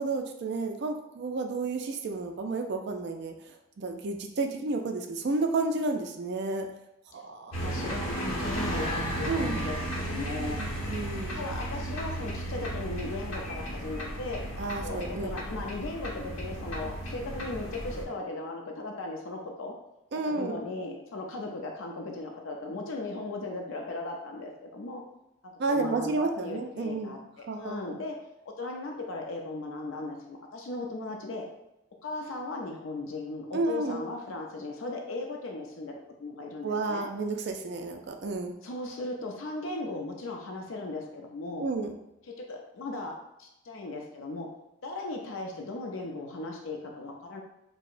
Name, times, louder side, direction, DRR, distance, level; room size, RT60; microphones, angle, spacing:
voice 1, 0.0-3.3 3.8-6.7 7.1-7.5 9.2-9.6 10.6-11.5 14.6-15.4 20.1-20.6 25.6-27.1 27.5-28.0 33.5-34.0 36.6-38.5 41.6-41.9, right 3 dB, 50° right, 4 dB, 0.4 m, -31 dB
sound 1, 7.5-18.0, right 1 dB, 90° left, 0.9 m, -34 dB
voice 2, 7.6-10.6 11.3-14.4 14.8-19.7 20.3-25.0 25.4-28.2 28.6-31.4 32.0-37.1 38.6-41.7 42.2-44.5 44.8-47.4, left 2 dB, 70° left, 1 dB, 0.5 m, -37 dB
4.6 x 2.1 x 2.5 m, 0.89 s
head